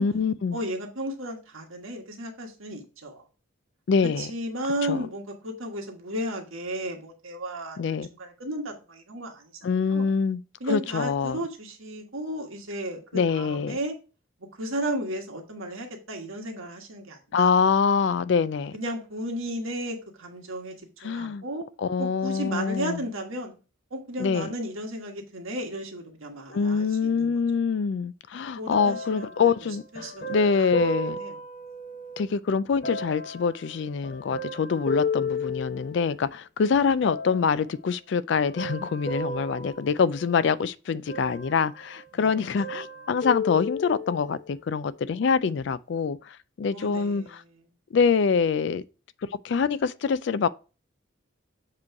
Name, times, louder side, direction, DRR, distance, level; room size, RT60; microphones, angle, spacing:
voice 1, 0.0-0.6 3.9-4.3 4.9-5.0 7.8-8.1 9.6-10.4 10.7-11.4 13.1-13.8 17.3-18.7 21.0-21.4 21.8-23.1 24.2-24.5 26.5-31.2 32.2-47.4 47.9-48.8 49.4-50.5, left 5 dB, 55° left, 0.3 m, -25 dB
voice 2, 0.5-3.2 4.2-9.6 9.9-10.1 10.6-13.9 14.6-17.5 18.7-21.6 22.0-23.5 23.9-27.3 28.6-29.5 29.9-30.2 30.6-30.7 31.0-31.4 42.1-42.3 46.7-47.5, right 1 dB, 80° right, 1.5 m, -34 dB
sound 1, 28.7-32.3 32.8-36.3 37.0-37.7 38.3-40.6 41.1-42.1 42.3-44.4 45.1-45.2, left 2 dB, 40° left, 0.9 m, -34 dB
7.4 x 3.1 x 4.6 m
head